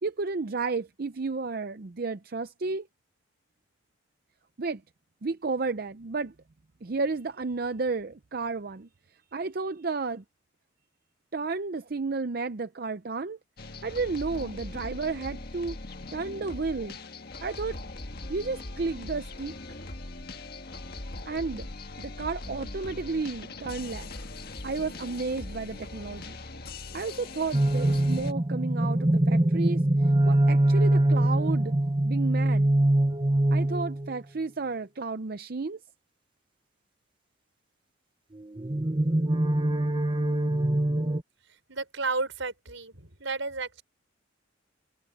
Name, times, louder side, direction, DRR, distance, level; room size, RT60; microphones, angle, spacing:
voice 1, 0.0-2.9 4.6-4.8 5.2-6.3 6.8-8.9 9.3-10.2 11.3-13.4 13.8-15.8 16.1-17.0 17.4-17.8 18.3-19.5 21.3-21.7 22.0-24.1 24.6-26.4 26.9-29.8 30.2-31.7 32.0-32.7 33.5-35.8, right 4 dB, 50° right, 0.6 m, -32 dB
sound 1, 13.6-28.3, left 2 dB, 50° left, 1.6 m, -40 dB
sound 2, 27.5-34.1 38.4-41.2, right 1 dB, 25° right, 1.0 m, -23 dB
voice 2, 41.7-43.8, right 3 dB, 75° right, 5.3 m, -32 dB
head